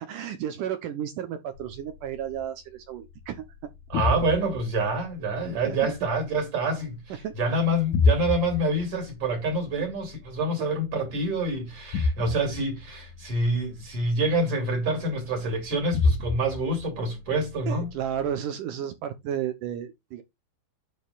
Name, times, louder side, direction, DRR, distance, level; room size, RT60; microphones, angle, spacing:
voice 1, 0.0-3.4 5.7-5.9 7.2-7.4 9.8-9.9 17.7-20.2, right 9 dB, 70° right, 2.0 m, -33 dB
sound 1, 1.5-18.3, left 3 dB, 65° left, 2.0 m, -32 dB
voice 2, 3.9-17.9, right 2 dB, 40° right, 2.7 m, -27 dB
9.6 x 6.6 x 2.4 m
omnidirectional pair, 4.8 m